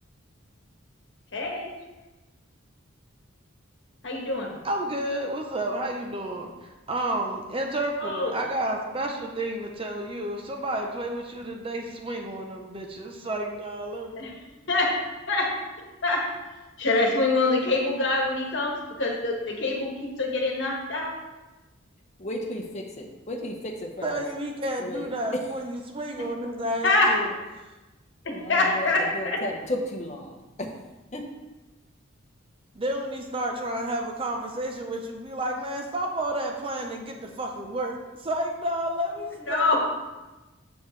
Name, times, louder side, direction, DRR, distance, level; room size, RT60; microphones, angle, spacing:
voice 1, 1.3-1.7 4.0-4.5 8.0-8.4 14.1-14.3 14.7-15.0 15.3-15.5 16.0-16.3 16.8-21.1 26.2-26.3 26.8-27.1 28.5-29.4 39.5-39.8, left 2 dB, 60° left, -1 dB, 1.4 m, -25 dB
voice 2, 4.6-14.1 24.0-27.3 32.7-39.8, right 1 dB, 25° right, 2 dB, 0.6 m, -31 dB
voice 3, 22.2-24.2 24.7-25.5 28.3-30.7 31.1-31.3, left 1 dB, 35° left, 1 dB, 1.0 m, -34 dB
7.1 x 7.0 x 3.2 m, 1.1 s
head